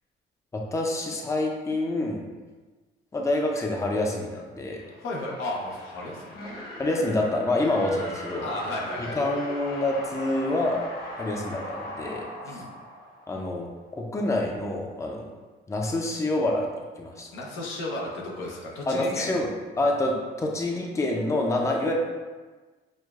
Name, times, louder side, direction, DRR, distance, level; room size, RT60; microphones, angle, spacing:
voice 1, 0.5-2.2 3.1-4.8 6.8-8.5 9.2-10.8 11.2-12.2 12.5-12.6 13.3-13.7 14.0-15.3 15.7-16.7 17.0-17.3 18.9-19.5 19.8-21.9, left 2 dB, 15° left, 0 dB, 0.5 m, -27 dB
sound 1, 4.8-13.6, left 1 dB, 50° left, 1.1 m, -39 dB
voice 2, 5.0-6.6 8.4-9.2 12.4-12.6 17.3-19.4, left 2 dB, 85° left, -2 dB, 0.8 m, -34 dB
6.2 x 2.2 x 2.4 m, 1.3 s
cardioid pair, 90°, 20 cm